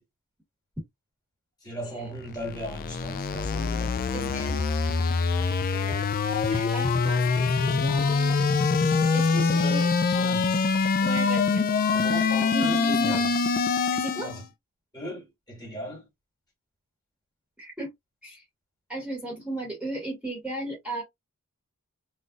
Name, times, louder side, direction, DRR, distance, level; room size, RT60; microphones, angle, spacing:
voice 1, 1.6-4.4 9.3-10.7 11.9-13.2 14.2-14.4 14.9-16.0, equal, 15° left, 1.7 m, -38 dB
sound 1, 2.2-14.4, left 4 dB, 40° left, 0.4 m, -24 dB
voice 2, 4.1-4.6 5.7-6.0 6.4-8.6 9.1-9.8 11.0-11.8 12.5-13.3 14.0-14.3 17.6-17.9 18.2-18.4 18.9-21.0, right 2 dB, 5° right, 1.5 m, -35 dB
3.8 x 2.5 x 2.4 m
head